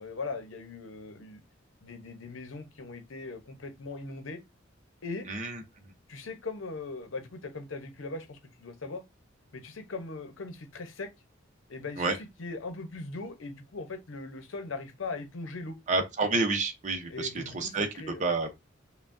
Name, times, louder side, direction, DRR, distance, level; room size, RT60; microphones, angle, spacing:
voice 1, 0.0-1.4 1.8-4.4 5.0-5.3 6.1-9.0 9.5-11.1 11.7-15.8 17.1-18.2, left 3 dB, 80° left, 0.8 m, -39 dB
voice 2, 5.3-5.6 12.0-12.2 15.9-17.9 18.2-18.5, right 3 dB, 40° right, 0.7 m, -29 dB
5.6 x 2.2 x 2.5 m
head